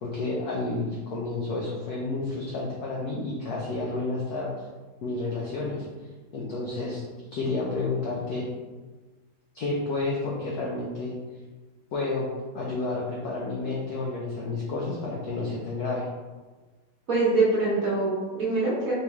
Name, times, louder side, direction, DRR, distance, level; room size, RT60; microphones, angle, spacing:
voice 1, 0.0-4.5 5.0-5.9 6.3-7.0 7.3-8.5 9.5-11.1 11.9-12.3 12.5-16.1, left 3 dB, 70° left, -4 dB, 0.9 m, -30 dB
voice 2, 17.1-18.9, right 3 dB, 50° right, -6 dB, 1.2 m, -24 dB
4.3 x 3.2 x 3.5 m, 1.3 s
omnidirectional pair, 2.4 m